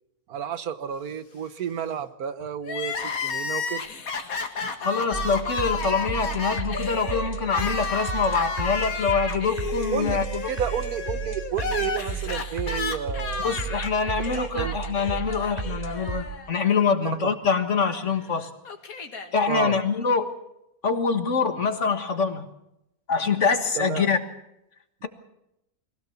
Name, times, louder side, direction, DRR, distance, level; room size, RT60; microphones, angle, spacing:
voice 1, 0.3-3.8 4.6-4.7 9.9-10.2 10.5-13.7 14.3-14.7 17.2-17.3 19.5-19.8 23.7-24.1, right 8 dB, 90° right, 12 dB, 1.6 m, -31 dB
Crying sobbing, 2.6-16.8 17.1-17.2 18.1-19.3, left 4 dB, 70° left, 2.1 m, -32 dB
voice 2, 4.8-10.4 13.4-18.5 19.3-20.3 20.8-22.5 23.1-24.2, left 5 dB, 55° left, 8 dB, 1.9 m, -25 dB
sound 1, 5.1-16.2, right 6 dB, 35° right, 2.9 m, -34 dB
23.0 x 16.5 x 7.1 m, 0.85 s
omnidirectional pair, 1.5 m